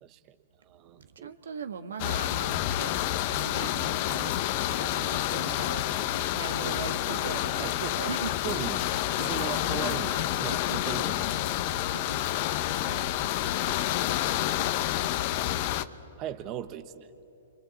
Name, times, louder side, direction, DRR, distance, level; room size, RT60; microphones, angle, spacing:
voice 1, 0.0-0.4 0.6-1.3 6.6-6.7 7.0-7.2 7.6-8.0 8.4-8.9 9.2-11.8 12.8-13.2 13.7-14.3 16.2-17.1, right 10 dB, 35° right, 9 dB, 1.0 m, -39 dB
voice 2, 1.0-3.0 3.3-4.3 4.6-6.0 6.3-8.3 11.9-12.2, right 6 dB, 80° right, 8 dB, 1.6 m, -39 dB
sound 1, 2.0-15.8, left 13 dB, 45° left, 0.9 m, -29 dB
29.5 x 24.0 x 8.4 m, 2.7 s
hypercardioid pair, 125°, 0 cm